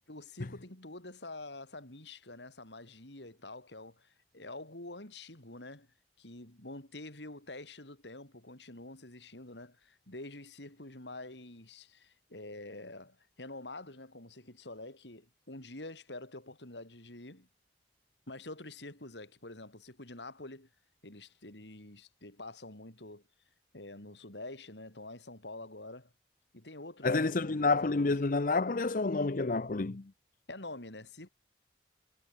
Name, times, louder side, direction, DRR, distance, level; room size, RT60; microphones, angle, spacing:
voice 1, 0.1-5.9 6.2-17.5 18.3-20.7 21.0-23.2 23.7-26.1 26.5-28.1 30.5-31.3, left 2 dB, 85° left, 4.9 m, -47 dB
voice 2, 27.0-30.0, left 3 dB, 50° left, 0.7 m, -29 dB
head